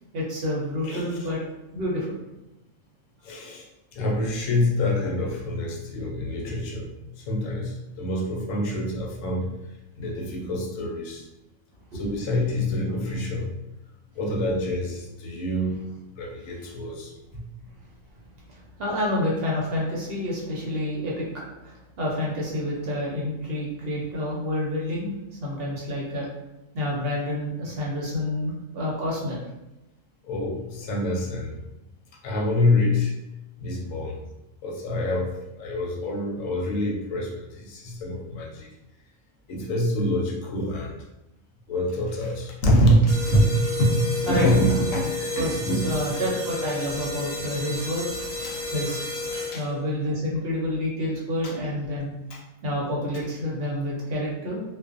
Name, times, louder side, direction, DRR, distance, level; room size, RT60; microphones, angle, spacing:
voice 1, 0.1-1.4 1.7-2.1 11.9-12.0 18.5-25.1 25.4-26.3 26.7-29.4 44.3-44.5 45.3-45.6 45.8-48.1 48.7-49.0 49.5-52.1 52.6-54.6, left 1 dB, 55° right, -4 dB, 0.8 m, -28 dB
voice 2, 0.8-1.3 3.2-3.7 3.9-9.5 10.0-11.2 11.9-13.5 14.1-15.8 16.1-17.4 30.2-31.5 32.2-33.1 33.6-34.2 34.6-38.7 39.5-41.0 41.7-46.0 48.4-48.6 49.5-49.6 51.4-51.5 52.3-52.4, equal, 80° left, -1 dB, 1.0 m, -26 dB
sound 1, 43.1-49.8, left 3 dB, 5° right, 1.0 m, -31 dB
2.4 x 2.2 x 2.4 m, 0.94 s
omnidirectional pair, 1.3 m